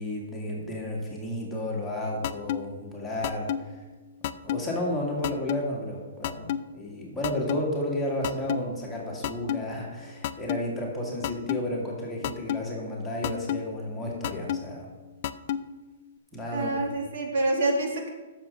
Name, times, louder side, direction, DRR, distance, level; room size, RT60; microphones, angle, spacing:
voice 1, 0.0-3.8 4.2-14.9 16.3-16.8, left 1 dB, 5° left, -5 dB, 2.0 m, -32 dB
sound 1, 2.2-2.6 3.2-3.6 4.2-4.6 5.2-5.6 6.2-6.6 7.2-7.6 8.2-8.6 9.2-9.6 10.2-10.6 11.2-11.6 12.2-12.6 13.2-13.6 14.2-14.6 15.2-15.6, left 11 dB, 45° left, 0.4 m, -28 dB
voice 2, 16.5-18.1, right 2 dB, 65° right, 1 dB, 2.1 m, -27 dB
7.4 x 6.6 x 6.9 m, 1.2 s
hypercardioid pair, 155°, 0 cm